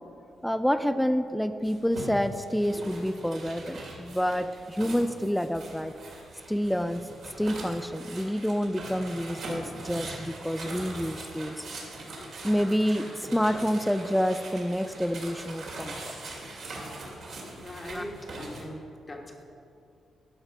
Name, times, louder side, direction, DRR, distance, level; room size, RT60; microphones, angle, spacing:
voice 1, 0.4-5.9 6.5-7.0 7.4-11.7 12.4-16.1 17.9-18.0, equal, 5° left, 10 dB, 0.4 m, -28 dB
sound 1, 1.6-18.6, right 2 dB, 65° right, 2.4 m, -41 dB
voice 2, 17.5-19.4, left 1 dB, 30° left, 1 dB, 1.4 m, -41 dB
12.0 x 5.8 x 5.3 m, 2.6 s
cardioid pair, 95°, 0 cm